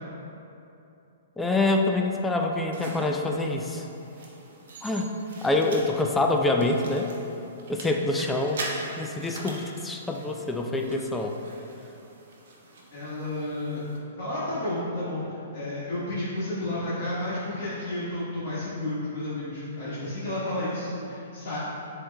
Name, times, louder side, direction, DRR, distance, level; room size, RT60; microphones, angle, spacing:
voice 1, 1.4-3.8 4.8-5.1 5.4-7.1 7.7-8.6 9.0-11.4, left 2 dB, 5° left, 2 dB, 0.3 m, -26 dB
sound 1, 2.7-14.0, right 2 dB, 65° right, 0.8 m, -43 dB
voice 2, 12.9-13.8 14.2-15.3 15.5-21.6, left 1 dB, 60° left, -11 dB, 1.3 m, -31 dB
7.5 x 3.0 x 2.2 m, 2.8 s
hypercardioid pair, 140°, 0 cm